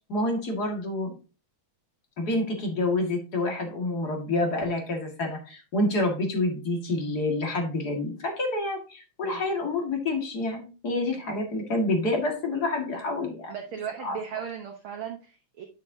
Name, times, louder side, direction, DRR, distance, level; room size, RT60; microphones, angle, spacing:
voice 1, 0.1-1.1 2.2-13.5 14.0-14.2, left 2 dB, 35° left, 1 dB, 2.0 m, -28 dB
voice 2, 13.5-15.6, right 8 dB, 75° right, 3 dB, 1.2 m, -37 dB
9.4 x 6.4 x 2.7 m, 0.33 s
omnidirectional pair, 3.6 m